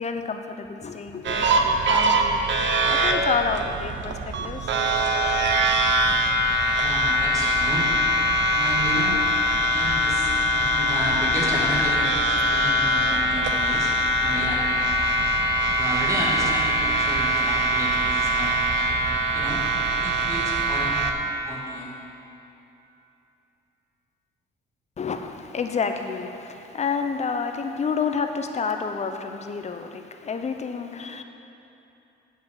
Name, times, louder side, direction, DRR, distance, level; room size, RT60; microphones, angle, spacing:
voice 1, 0.0-2.4 2.8-5.0 25.0-31.2, left 5 dB, 35° left, 6 dB, 0.7 m, -29 dB
sound 1, 1.2-21.1, equal, 65° right, 0.7 m, -22 dB
voice 2, 6.8-7.9 8.5-9.2 9.6-10.3 10.6-14.0 14.2-14.8 15.8-18.7 19.3-19.6 19.9-21.0 21.4-22.0, right 1 dB, 15° right, -5 dB, 2.3 m, -31 dB
7.7 x 5.6 x 7.2 m, 2.9 s
cardioid pair, 90°, 20 cm